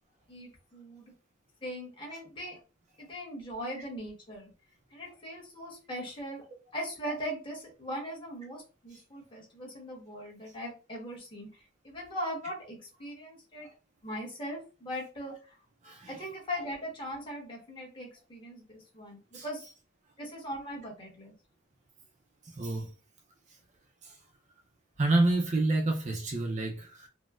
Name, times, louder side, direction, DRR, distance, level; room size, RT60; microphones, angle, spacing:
voice 1, 0.3-1.1 1.6-2.6 3.0-4.5 4.9-6.4 6.7-11.5 11.8-13.7 14.0-15.5 16.1-19.7 20.2-21.3, equal, 25° left, 1.2 m, -40 dB
voice 2, 15.8-16.2 19.3-19.4 22.4-22.9 24.0-24.2 25.0-27.1, right 2 dB, 35° right, 0.5 m, -28 dB
4.1 x 2.1 x 2.3 m
head